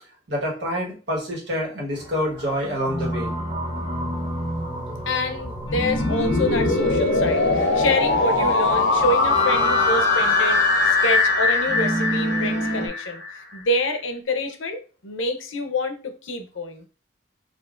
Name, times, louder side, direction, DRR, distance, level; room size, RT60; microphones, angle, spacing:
voice 1, 0.3-3.3, equal, 65° right, -2 dB, 1.3 m, -27 dB
sound 1, 1.9-10.2, right 1 dB, 30° right, 1.3 m, -39 dB
sound 2, 2.8-12.9, right 1 dB, 20° left, 1.3 m, -31 dB
voice 2, 5.1-10.6 10.8-16.9, left 1 dB, 85° left, 7 dB, 0.7 m, -27 dB
sound 3, 5.4-13.4, left 3 dB, 65° left, 1.1 m, -21 dB
5.2 x 2.5 x 2.5 m, 0.35 s
head